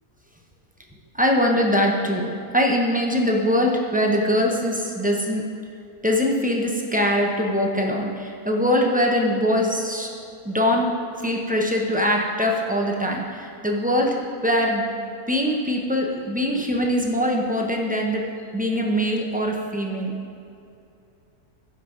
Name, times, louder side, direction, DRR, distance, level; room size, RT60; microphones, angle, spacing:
voice 1, 1.2-5.5 6.0-10.1 10.4-10.9 11.2-14.2 14.4-14.8 15.3-18.3 18.5-20.2, equal, 10° right, -1 dB, 0.6 m, -22 dB
15.5 x 5.6 x 3.8 m, 2.6 s
omnidirectional pair, 1.6 m